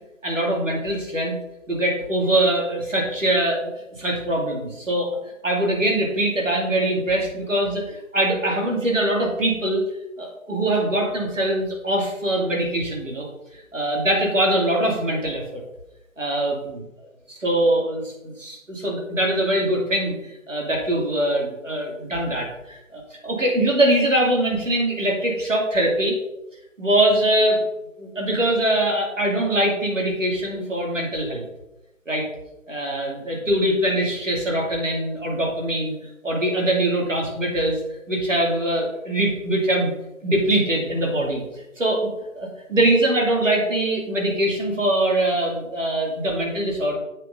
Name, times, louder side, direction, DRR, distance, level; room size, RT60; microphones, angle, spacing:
voice 1, 0.2-1.4 1.7-3.7 4.0-5.1 5.4-9.8 10.2-13.3 13.7-15.6 16.2-16.8 17.3-26.2 26.8-27.6 28.0-31.5 32.1-32.3 32.7-35.9 36.2-37.8 38.1-39.9 40.2-41.4 41.8-42.1 42.4-46.9, right 1 dB, 65° right, -1 dB, 2.8 m, -22 dB
7.4 x 6.2 x 3.8 m, 0.92 s
figure-of-eight pair, 170°, 41 cm